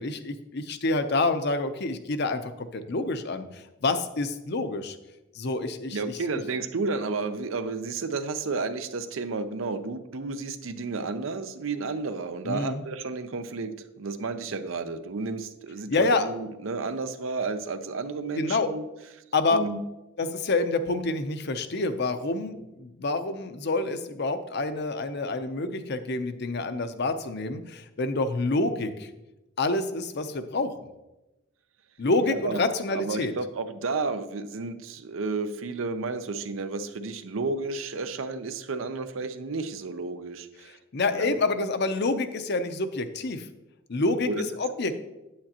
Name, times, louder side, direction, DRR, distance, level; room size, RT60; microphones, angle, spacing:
voice 1, 0.0-5.0 5.3-6.0 12.4-12.8 15.9-16.3 18.4-18.7 19.3-19.6 20.2-29.1 29.6-30.7 32.0-33.3 40.9-43.5 43.9-45.0, left 2 dB, 55° left, 9 dB, 0.7 m, -27 dB
voice 2, 5.9-18.8 19.5-19.8 32.2-32.6 32.9-40.8 41.1-41.3 44.2-44.4, right 3 dB, 85° right, 10 dB, 0.6 m, -32 dB
8.7 x 8.6 x 2.9 m, 0.98 s
head